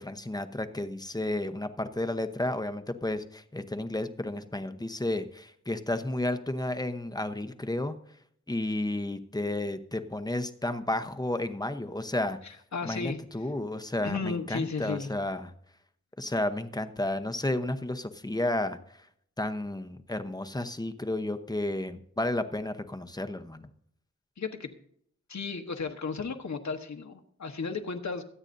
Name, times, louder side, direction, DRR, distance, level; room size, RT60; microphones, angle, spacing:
voice 1, 0.0-8.0 8.5-12.4 12.8-15.5 16.2-19.1 19.4-23.7, left 1 dB, 15° left, 9 dB, 0.8 m, -32 dB
voice 2, 12.4-13.2 14.0-15.1 24.4-24.7 25.3-28.2, left 4 dB, 70° left, 5 dB, 1.3 m, -34 dB
23.5 x 8.9 x 2.7 m, 0.68 s
wide cardioid pair, 115°, 29 cm